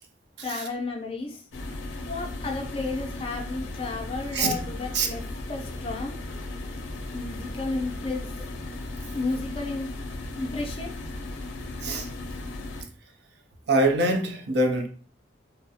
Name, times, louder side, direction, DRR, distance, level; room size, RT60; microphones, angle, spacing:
voice 1, 0.4-1.4 2.1-5.2 5.5-6.2 7.1-8.3 9.1-9.9 10.4-10.9, left 3 dB, 30° left, 0.4 m, -32 dB
sound 1, 1.5-12.8, left 2 dB, 90° left, 0.4 m, -36 dB
voice 2, 13.7-14.9, right 2 dB, 60° right, 0.5 m, -24 dB
2.4 x 2.0 x 2.6 m
head